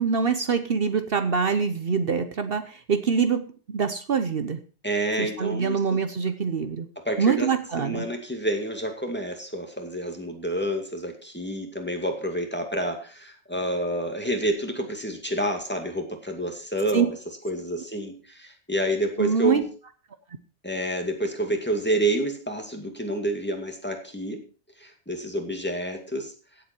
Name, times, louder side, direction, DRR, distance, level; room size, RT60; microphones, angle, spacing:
voice 1, 0.0-4.6 5.2-6.9 7.2-8.0 16.9-17.1 19.2-19.6, right 6 dB, 60° right, 9 dB, 1.1 m, -24 dB
voice 2, 4.8-6.0 7.0-7.5 7.8-17.1 17.4-19.7 20.6-24.4 24.8-26.3, right 1 dB, 10° left, 3 dB, 2.3 m, -29 dB
16.5 x 8.0 x 4.5 m, 0.36 s
omnidirectional pair, 1.2 m